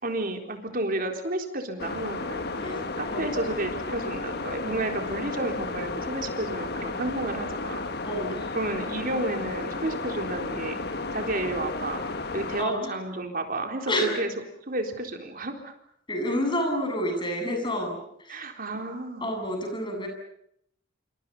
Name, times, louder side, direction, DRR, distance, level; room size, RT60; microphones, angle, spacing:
voice 1, 0.0-7.8 8.5-10.8 11.1-12.0 12.3-14.3 14.7-15.7 18.3-19.3, right 2 dB, 45° right, 4 dB, 4.0 m, -31 dB
sound 1, 1.8-12.7, left 3 dB, 55° left, 1.6 m, -33 dB
voice 2, 2.6-3.4 8.0-8.5 12.6-13.0 13.9-14.3 16.1-18.5 19.2-20.1, equal, 25° left, 4 dB, 7.9 m, -29 dB
28.0 x 28.0 x 5.6 m, 0.70 s
head